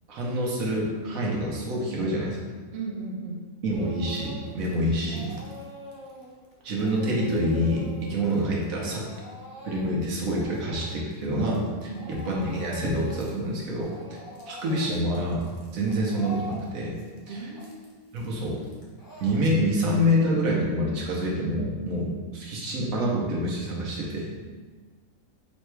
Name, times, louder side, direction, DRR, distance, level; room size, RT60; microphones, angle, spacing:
voice 1, 0.1-2.4 3.6-5.4 6.6-9.1 9.6-14.2 14.5-15.4 15.7-17.0 17.3-17.5 18.1-18.6 19.2-24.3, equal, 75° right, -3 dB, 1.3 m, -27 dB
voice 2, 2.7-3.4 11.9-12.1 17.3-18.0, right 3 dB, 60° right, -2 dB, 0.8 m, -36 dB
Speech / Crying sobbing, 3.7-4.7 5.0-11.7 11.9-13.4 13.7-19.9, equal, 30° left, 0.4 m, -44 dB
4.0 x 2.3 x 4.5 m, 1.4 s
omnidirectional pair, 1.5 m